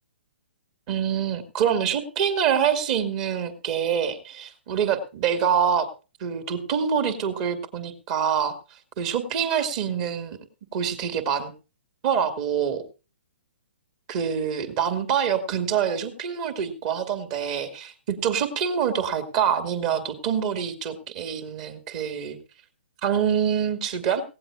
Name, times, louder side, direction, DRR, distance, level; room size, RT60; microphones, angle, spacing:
voice 1, 0.9-5.9 6.2-8.5 9.0-10.4 10.7-11.5 12.0-12.8 14.1-22.4 23.0-24.2, right 8 dB, 35° right, 9 dB, 2.3 m, -25 dB
18.0 x 16.5 x 2.4 m, 0.32 s
figure-of-eight pair, 125°, 7 cm